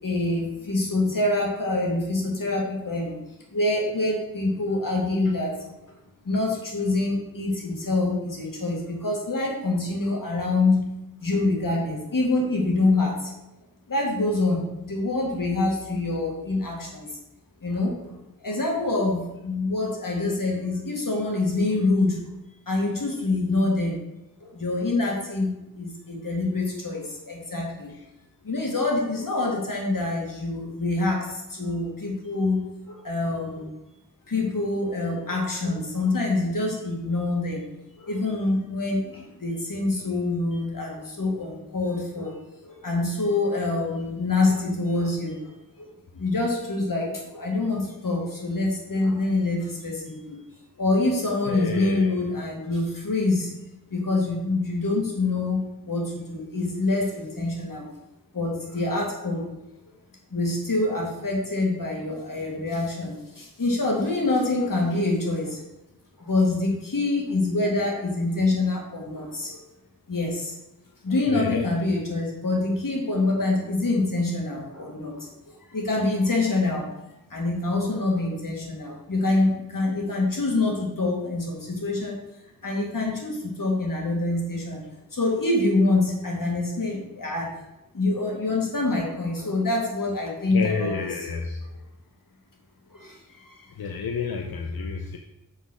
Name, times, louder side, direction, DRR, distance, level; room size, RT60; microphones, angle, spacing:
voice 1, 0.0-3.2 3.5-5.7 6.2-10.9 11.2-13.3 13.9-17.2 17.6-18.2 18.4-22.3 22.7-23.9 24.4-27.9 28.4-33.7 34.3-37.6 38.0-42.3 42.6-45.9 46.1-50.4 50.8-53.5 53.9-57.9 58.3-59.5 60.3-65.6 66.2-69.6 70.1-70.5 71.0-75.3 75.7-76.9 77.3-82.2 82.6-84.8 85.1-87.5 87.9-91.0 92.9-93.6, left 2 dB, 65° left, -1 dB, 1.9 m, -26 dB
voice 2, 51.4-52.2 56.3-56.4 71.3-71.7 90.5-91.7 93.7-95.2, left 5 dB, 90° left, 3 dB, 0.6 m, -30 dB
5.7 x 4.0 x 6.1 m, 0.94 s
wide cardioid pair, 60°, 35 cm